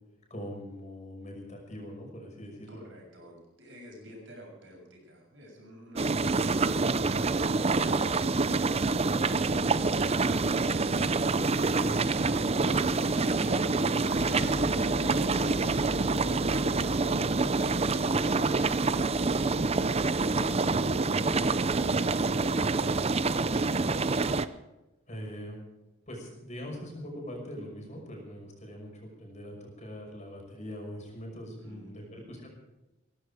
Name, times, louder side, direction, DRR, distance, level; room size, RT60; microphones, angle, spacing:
voice 1, 0.3-2.8 11.7-12.5 13.3-13.6 25.1-25.6 26.1-32.5, equal, 40° left, 1 dB, 5.9 m, -42 dB
voice 2, 2.7-7.5 31.6-32.5, equal, 70° right, 0 dB, 6.9 m, -50 dB
sound 1, 5.9-24.5, right 3 dB, 30° right, 0.6 m, -26 dB
sound 2, 14.2-21.7, left 1 dB, 60° left, 1.3 m, -43 dB
17.0 x 15.5 x 5.0 m, 1.0 s
head